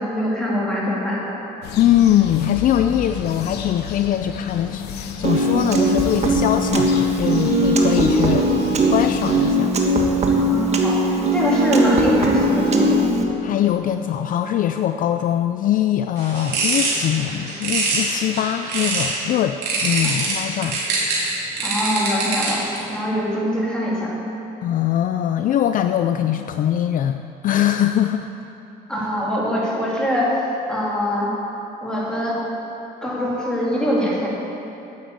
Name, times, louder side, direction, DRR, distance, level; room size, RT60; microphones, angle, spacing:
voice 1, 0.0-1.3 10.4-13.1 21.6-24.1 28.9-30.4 30.7-31.3 31.8-32.4 33.0-34.3, equal, 5° left, -6 dB, 3.3 m, -23 dB
sound 1, 1.6-9.6, left 7 dB, 80° left, 1.0 m, -32 dB
voice 2, 1.8-8.5 8.9-9.7 13.4-20.8 24.6-28.3, left 11 dB, 55° left, 8 dB, 0.4 m, -22 dB
Piano, 5.2-13.2, right 1 dB, 40° right, 1.5 m, -19 dB
sound 2, 16.2-19.2 19.6-22.8, right 3 dB, 80° right, 3.1 m, -24 dB
9.7 x 8.4 x 8.0 m, 3.0 s
cardioid pair, 110°, 17 cm